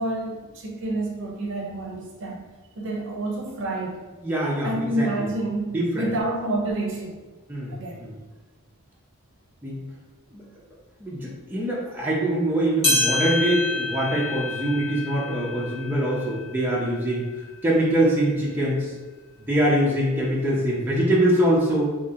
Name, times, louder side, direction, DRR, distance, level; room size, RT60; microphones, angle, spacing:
voice 1, 0.0-2.4 2.8-4.0 4.6-7.2 7.7-8.0, right 2 dB, 55° right, -1 dB, 0.6 m, -28 dB
voice 2, 4.2-5.3 5.7-6.1 7.5-8.2 9.6-9.8 10.3-10.4 11.0-17.2 17.6-18.9 19.5-21.9, right 1 dB, 10° right, -6 dB, 0.5 m, -23 dB
sound 1, 12.8-17.5 18.0-18.1 18.9-19.0 19.9-20.0, left 2 dB, 25° left, 1.1 m, -28 dB
3.7 x 2.8 x 2.7 m, 1.2 s
head